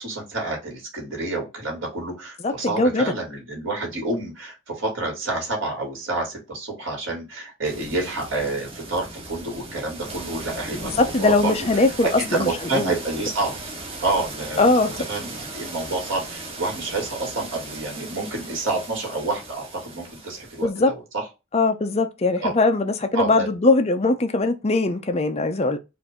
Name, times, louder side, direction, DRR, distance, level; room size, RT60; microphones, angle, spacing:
voice 1, 0.0-13.5 14.0-21.2 22.4-22.5 23.1-23.5, right 2 dB, 60° right, 2.5 m, -29 dB
voice 2, 2.4-3.0 11.0-12.9 14.6-15.0 20.6-20.9 21.5-25.8, left 2 dB, 30° left, 0.5 m, -20 dB
sound 1, 7.6-20.6, right 2 dB, 25° right, 1.2 m, -37 dB
4.9 x 2.6 x 3.6 m
head